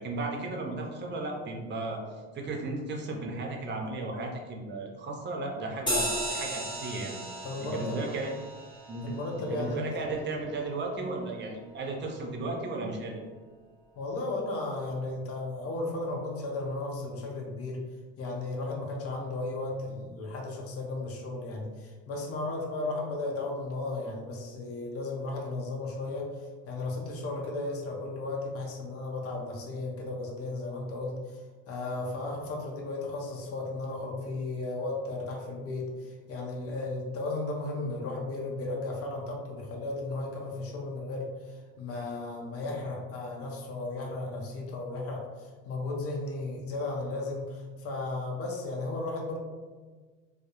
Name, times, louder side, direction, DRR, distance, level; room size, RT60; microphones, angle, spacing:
voice 1, 0.0-2.0 2.3-8.3 8.9-9.1 9.5-13.2, right 2 dB, 35° right, 1 dB, 0.6 m, -35 dB
sound 1, 5.9-10.8, equal, 15° left, 1.0 m, -36 dB
voice 2, 7.4-8.0 9.0-9.9 14.0-17.8 18.2-31.4 31.7-49.4, left 2 dB, 45° left, -1 dB, 0.6 m, -35 dB
2.2 x 2.0 x 2.9 m, 1.4 s
hypercardioid pair, 70°, 33 cm